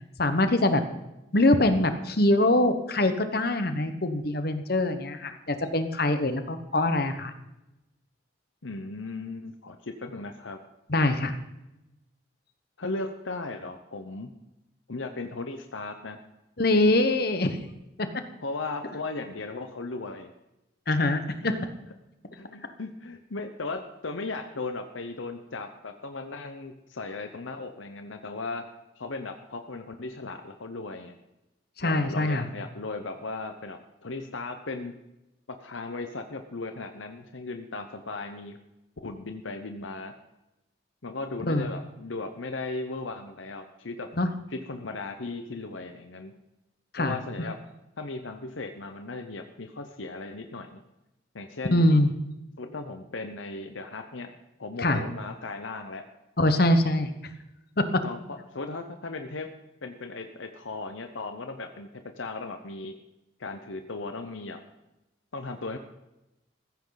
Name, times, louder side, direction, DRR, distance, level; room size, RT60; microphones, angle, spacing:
voice 1, 0.2-0.8 1.3-7.3 10.9-11.3 16.6-17.6 18.0-18.1 20.9-21.6 31.8-32.5 41.5-41.7 44.2-44.3 46.9-47.2 51.7-52.1 54.8-55.0 56.4-57.1 57.8-58.0, left 1 dB, 50° left, 9 dB, 1.3 m, -23 dB
voice 2, 8.6-10.6 12.8-14.3 14.9-16.2 18.4-20.3 20.9-21.0 21.4-21.5 22.3-28.7 29.0-31.2 31.8-34.9 35.5-38.6 39.0-40.1 41.0-44.1 44.5-46.3 47.0-47.6 48.0-50.8 51.3-51.9 52.6-54.3 54.6-56.0 58.0-59.5 59.8-63.0 63.4-64.6 65.3-65.8, left 3 dB, 80° left, 6 dB, 1.0 m, -37 dB
15.0 x 14.5 x 4.1 m, 0.94 s
head